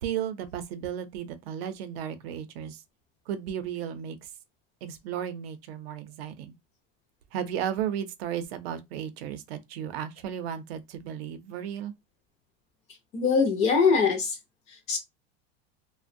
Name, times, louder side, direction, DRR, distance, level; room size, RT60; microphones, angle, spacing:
voice 1, 0.0-2.8 3.3-4.2 4.8-6.5 7.3-11.9, right 9 dB, 75° right, 0.6 m, -34 dB
voice 2, 13.1-14.4 14.9-15.0, left 5 dB, 25° left, 0.3 m, -22 dB
2.5 x 2.1 x 2.5 m
supercardioid pair, 170°, 31 cm